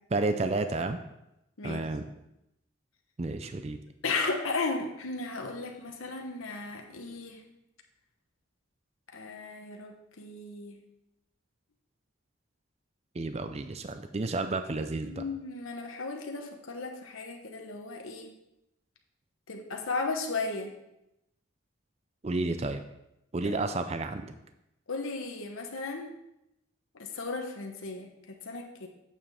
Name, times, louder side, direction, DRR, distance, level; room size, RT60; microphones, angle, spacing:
voice 1, 0.1-1.0 1.6-2.0 3.2-3.8 13.2-15.2 22.2-22.8 23.3-24.3, right 2 dB, 30° right, 8 dB, 0.4 m, -31 dB
voice 2, 4.0-7.4 9.1-10.8 15.0-18.4 19.5-20.7 23.4-23.6 24.9-26.1 26.9-28.9, left 3 dB, 85° left, 3 dB, 1.0 m, -35 dB
8.6 x 7.2 x 3.4 m, 0.86 s
head